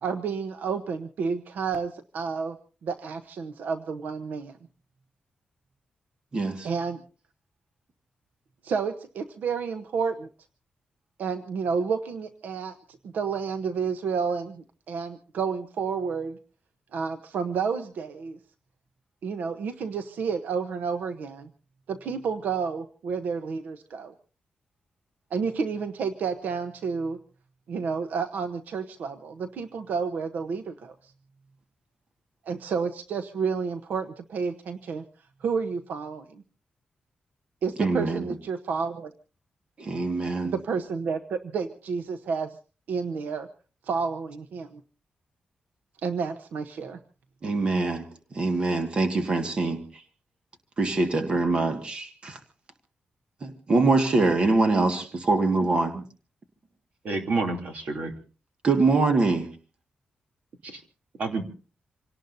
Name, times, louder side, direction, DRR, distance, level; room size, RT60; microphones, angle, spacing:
voice 1, 0.0-2.6 2.8-4.5 6.6-7.0 8.6-10.3 11.2-12.7 13.0-16.4 16.9-18.4 19.2-21.5 21.9-24.1 25.3-27.2 27.7-31.1 32.5-35.0 35.4-36.4 37.6-39.1 40.4-42.6 42.9-43.5 43.8-44.8 46.0-47.0, right 5 dB, 85° right, 9 dB, 0.9 m, -30 dB
voice 2, 6.3-6.7 37.8-38.2 39.8-40.5 47.4-48.0 48.3-50.0 50.8-52.4 53.4-55.9 58.6-59.5, right 3 dB, 35° right, 5 dB, 1.8 m, -24 dB
voice 3, 57.0-58.1 60.6-60.8 61.2-61.4, right 3 dB, 60° right, 4 dB, 3.0 m, -29 dB
27.5 x 18.0 x 2.7 m, 0.37 s
wide cardioid pair, 170°, 3 cm